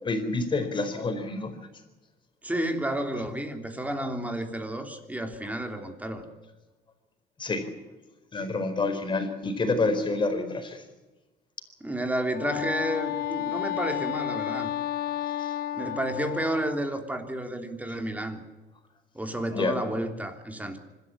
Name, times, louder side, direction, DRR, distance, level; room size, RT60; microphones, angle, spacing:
voice 1, 0.0-1.5 7.4-7.7 8.3-10.8 15.4-15.5 19.5-19.7, left 3 dB, 30° left, 7 dB, 4.6 m, -28 dB
voice 2, 2.4-6.3 11.8-14.7 15.7-18.4 19.1-20.8, right 1 dB, 10° right, 5 dB, 3.3 m, -31 dB
Wind instrument woodwind instrument, 12.2-16.9, left 12 dB, 65° left, 1.1 m, -32 dB
25.5 x 13.0 x 9.9 m, 1.1 s
cardioid pair, 110°, 17 cm